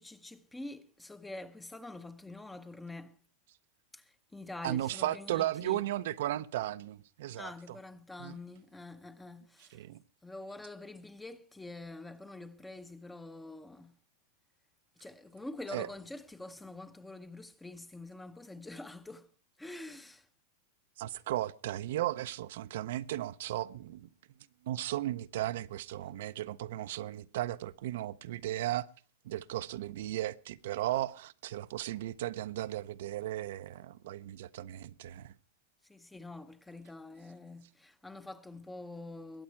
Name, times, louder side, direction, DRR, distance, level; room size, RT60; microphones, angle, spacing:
voice 1, 0.0-3.2 3.9-5.9 7.3-9.9 10.2-14.0 15.0-19.3 19.6-20.3 35.8-39.4, left 2 dB, 5° left, 0.7 m, -46 dB
voice 2, 4.6-7.5 8.2-8.4 9.7-10.0 15.7-15.9 21.0-24.1 24.6-28.9 29.2-35.3, right 14 dB, 70° right, 0.6 m, -35 dB
21.5 x 8.7 x 4.5 m
supercardioid pair, 145°, 0 cm